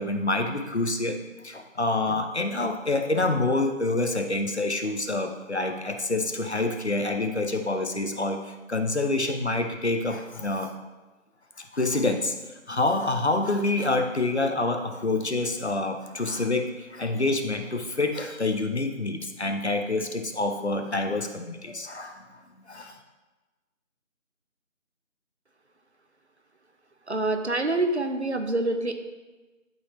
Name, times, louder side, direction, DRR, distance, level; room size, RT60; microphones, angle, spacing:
voice 1, 0.0-10.7 11.6-12.4 12.7-22.3 22.7-23.0, left 2 dB, 55° left, 6 dB, 0.8 m, -27 dB
voice 2, 27.1-28.9, right 2 dB, 60° right, 6 dB, 0.8 m, -26 dB
11.5 x 4.0 x 3.1 m, 1.2 s
figure-of-eight pair, 170°, 39 cm